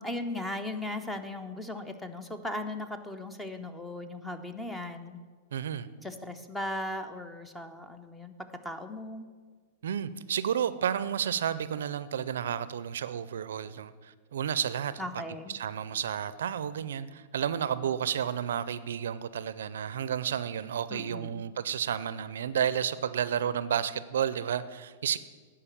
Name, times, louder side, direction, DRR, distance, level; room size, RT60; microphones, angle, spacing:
voice 1, 0.0-5.2 6.0-9.3 15.0-15.6 20.9-21.4, left 1 dB, 5° left, 9 dB, 0.6 m, -37 dB
voice 2, 5.5-5.9 9.8-15.0 15.5-25.2, right 9 dB, 80° right, 15 dB, 0.4 m, -31 dB
9.8 x 4.9 x 7.3 m, 1.5 s
hypercardioid pair, 130°, 0 cm